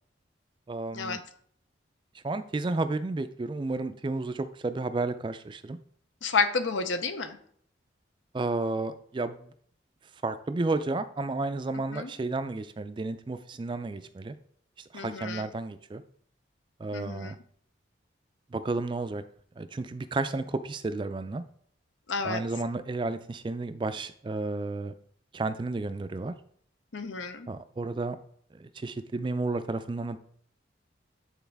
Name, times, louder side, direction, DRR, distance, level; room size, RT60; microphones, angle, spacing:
voice 1, 0.7-1.2 2.2-5.8 8.3-9.5 10.2-14.4 14.9-16.0 16.8-17.4 18.5-19.2 19.6-21.4 22.2-24.9 25.3-26.3 27.5-28.2 28.5-30.2, right 3 dB, 25° right, 11 dB, 0.3 m, -32 dB
voice 2, 6.2-7.4 11.9-12.1 14.9-15.4 16.9-17.3 22.1-22.4 26.9-27.5, left 4 dB, 85° left, 9 dB, 0.7 m, -30 dB
9.2 x 4.0 x 3.4 m, 0.62 s
head